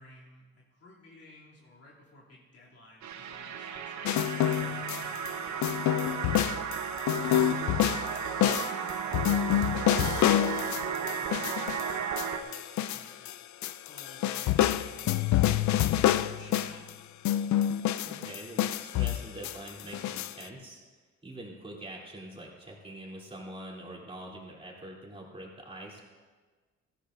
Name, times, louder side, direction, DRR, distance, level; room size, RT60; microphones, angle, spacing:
voice 1, 0.0-6.7 7.2-13.4 13.8-16.9, left 2 dB, 50° left, -6 dB, 3.0 m, -54 dB
sound 1, 3.0-12.4, right 8 dB, 70° right, 1.0 m, -34 dB
sound 2, 4.0-5.3 5.6-13.3 13.6-16.9 17.3-20.4, left 12 dB, 70° left, 0.5 m, -27 dB
voice 2, 15.9-16.2 18.0-20.8 21.2-26.0, right 1 dB, 20° right, -3 dB, 3.3 m, -44 dB
17.0 x 14.0 x 2.6 m, 1.4 s
cardioid pair, 90°, 30 cm